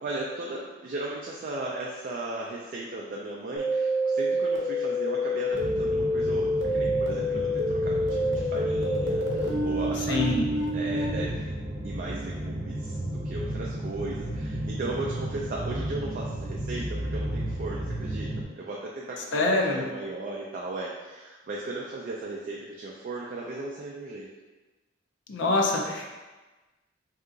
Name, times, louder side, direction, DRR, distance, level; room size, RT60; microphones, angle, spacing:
voice 1, 0.0-11.6 11.8-18.3 18.6-24.3, right 2 dB, 45° right, -3 dB, 0.3 m, -36 dB
sound 1, 3.6-11.1, equal, 65° right, 0.7 m, -27 dB
sound 2, 5.5-18.4, right 1 dB, 25° right, 0.9 m, -33 dB
voice 2, 10.1-10.4 19.3-19.8 25.3-26.1, left 2 dB, 65° left, 1 dB, 0.5 m, -25 dB
2.8 x 2.4 x 3.7 m, 1.2 s
head